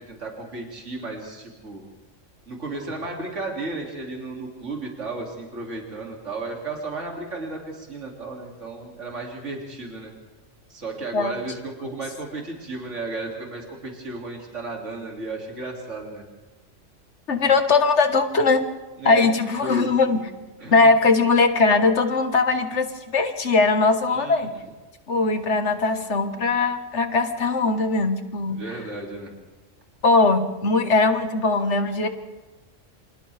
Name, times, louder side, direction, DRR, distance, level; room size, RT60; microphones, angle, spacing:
voice 1, 0.1-1.8 2.5-10.1 10.7-16.2 19.0-19.3 19.6-19.9 20.6-20.9 24.1-24.6 28.5-29.3, right 3 dB, 70° right, 0 dB, 3.2 m, -34 dB
voice 2, 17.3-18.7 19.1-20.2 20.7-24.5 25.1-28.6 30.0-32.1, left 3 dB, 65° left, 7 dB, 1.8 m, -20 dB
29.0 x 26.5 x 3.5 m, 1.2 s
omnidirectional pair, 1.3 m